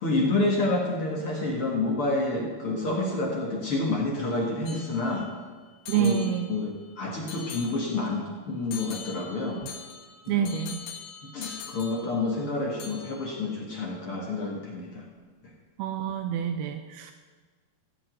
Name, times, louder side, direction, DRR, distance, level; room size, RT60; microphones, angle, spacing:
voice 1, 0.0-5.3 5.9-6.2 6.5-9.6 10.3-10.5 11.3-15.0, left 2 dB, 50° left, -2 dB, 1.8 m, -28 dB
sound 1, 4.7-5.4 5.9-6.9 7.3-8.2 8.7-12.5 12.8-13.4, left 7 dB, 70° left, 3.1 m, -43 dB
voice 2, 5.9-6.6 10.3-10.8 15.8-17.1, right 7 dB, 85° right, 7 dB, 2.5 m, -27 dB
15.5 x 5.4 x 9.0 m, 1.5 s
omnidirectional pair, 4.6 m